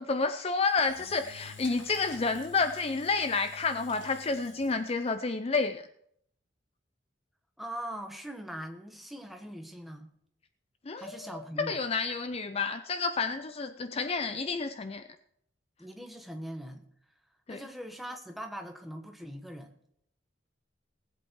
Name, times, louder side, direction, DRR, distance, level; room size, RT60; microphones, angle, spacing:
voice 1, 0.0-5.9 10.9-15.0 17.5-17.6, left 4 dB, 30° left, 10 dB, 0.5 m, -30 dB
Engine / Drill, 0.7-5.2, left 5 dB, 70° left, 2.1 m, -50 dB
voice 2, 7.6-10.1 10.9-11.8 15.8-16.8 17.5-19.7, equal, ahead, 4 dB, 1.3 m, -41 dB
19.0 x 8.1 x 4.6 m, 0.70 s
head